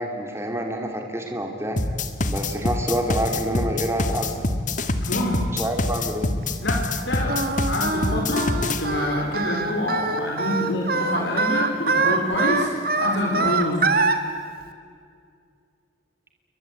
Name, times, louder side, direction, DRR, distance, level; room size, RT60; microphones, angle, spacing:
voice 1, 0.0-1.8 2.3-4.4 5.5-6.3, equal, 15° right, 3 dB, 2.9 m, -27 dB
sound 1, 1.8-8.8, left 2 dB, 45° left, 1.9 m, -25 dB
voice 2, 5.1-5.4 6.6-8.5 8.8-12.7 13.0-13.9, left 1 dB, 75° left, -2 dB, 4.8 m, -26 dB
Singing, 7.3-14.2, right 3 dB, 55° right, 2.3 m, -24 dB
29.0 x 24.0 x 8.5 m, 2.2 s
head